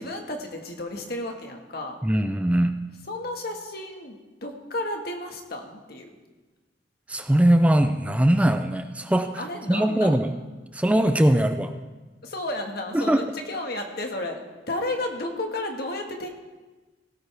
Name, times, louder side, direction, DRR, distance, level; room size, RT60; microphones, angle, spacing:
voice 1, 0.0-2.0 3.1-6.1 9.4-10.2 12.2-14.4 14.7-16.3, left 1 dB, 65° left, 4 dB, 1.6 m, -32 dB
voice 2, 2.0-2.8 7.1-9.4 9.7-10.3 10.7-11.7 12.9-13.2, right 1 dB, 10° right, 8 dB, 0.4 m, -21 dB
17.0 x 13.5 x 3.4 m, 1.2 s
head